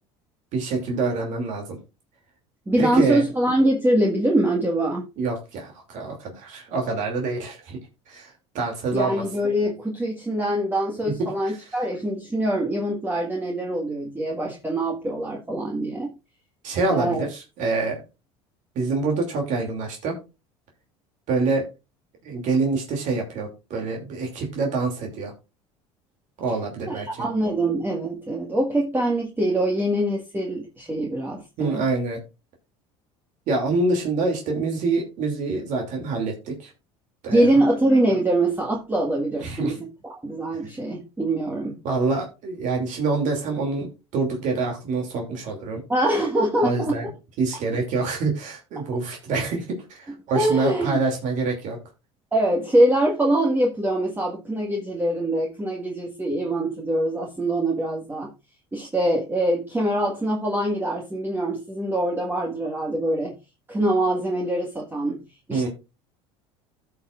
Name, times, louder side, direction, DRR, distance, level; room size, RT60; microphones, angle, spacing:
voice 1, 0.5-1.8 2.8-3.2 5.2-7.8 8.1-9.2 11.1-11.2 16.6-17.3 17.6-18.0 18.7-20.2 21.3-21.7 22.2-25.3 26.4-27.1 31.6-32.2 33.5-36.7 37.2-37.6 39.4-39.8 41.8-45.8 46.6-47.1 47.4-51.8 65.5-65.7, right 3 dB, 60° right, 2 dB, 2.7 m, -26 dB
voice 2, 2.7-5.0 8.9-16.1 16.9-17.2 26.9-31.8 37.3-39.9 40.2-41.8 45.9-47.0 49.3-49.4 50.3-51.0 52.3-58.3 58.7-63.3 63.7-65.2 65.5-65.7, right 1 dB, 15° right, -1 dB, 1.7 m, -23 dB
16.0 x 5.8 x 2.4 m, 0.28 s
supercardioid pair, 90°, 14 cm